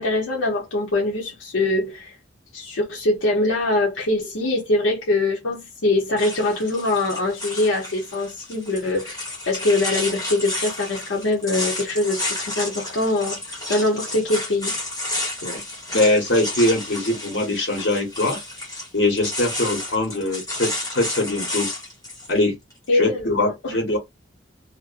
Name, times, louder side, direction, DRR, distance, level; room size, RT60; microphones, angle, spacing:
voice 1, 0.0-2.1 2.5-13.4 13.7-14.8 22.9-23.8, left 2 dB, 90° left, 0.8 m, -23 dB
sound 1, 6.2-22.3, left 1 dB, 15° left, 1.2 m, -31 dB
voice 2, 15.9-18.4 18.9-21.7 22.3-22.6 22.9-24.0, left 1 dB, 65° left, 1.2 m, -22 dB
2.5 x 2.1 x 2.5 m
head